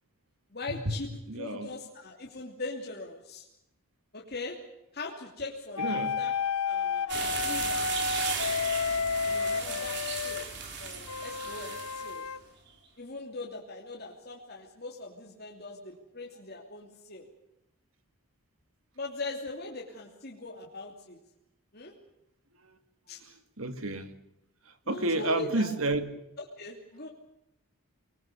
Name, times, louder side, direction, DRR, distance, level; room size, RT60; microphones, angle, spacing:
voice 1, 0.5-1.1 1.4-3.4 4.1-4.6 4.9-6.3 6.6-7.8 9.2-10.4 10.8-12.2 13.0-17.2 19.0-21.2 21.7-21.9 23.1-23.2 24.9-25.7 26.6-27.1, left 2 dB, 45° left, -1 dB, 3.0 m, -40 dB
voice 2, 1.3-1.7 5.8-6.2 23.6-24.1 24.9-26.1, right 2 dB, 70° right, 9 dB, 2.2 m, -30 dB
sound 1, 5.8-10.5 11.1-12.4, left 5 dB, 85° left, 0.9 m, -31 dB
sound 2, 7.1-12.2, right 5 dB, 50° right, 4.3 m, -36 dB
24.5 x 21.5 x 6.9 m, 0.85 s
head